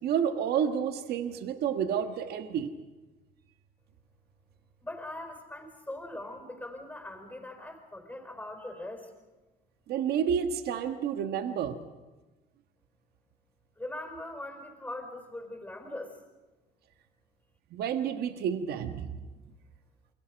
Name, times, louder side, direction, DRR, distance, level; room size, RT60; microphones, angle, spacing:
voice 1, 0.0-2.7 9.9-11.9 17.7-19.2, right 8 dB, 70° right, 8 dB, 1.5 m, -30 dB
voice 2, 4.8-9.1 13.8-16.2, left 1 dB, 10° left, 5 dB, 4.7 m, -41 dB
29.0 x 23.5 x 5.3 m, 1.2 s
cardioid pair, 110°, 17 cm